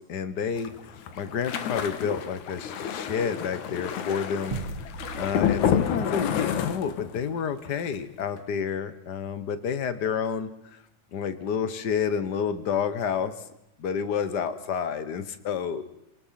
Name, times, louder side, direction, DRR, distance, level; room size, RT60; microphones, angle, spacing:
voice 1, 0.1-10.8 11.1-13.3 13.8-15.8, left 7 dB, 50° left, 12 dB, 1.4 m, -30 dB
sound 1, 0.6-7.3 7.6-7.9 8.2-8.4, left 8 dB, 85° left, 2.8 m, -29 dB
sound 2, 4.5-7.3, right 4 dB, 55° right, 3.0 m, -40 dB
28.5 x 19.0 x 5.9 m, 0.83 s
omnidirectional pair, 3.3 m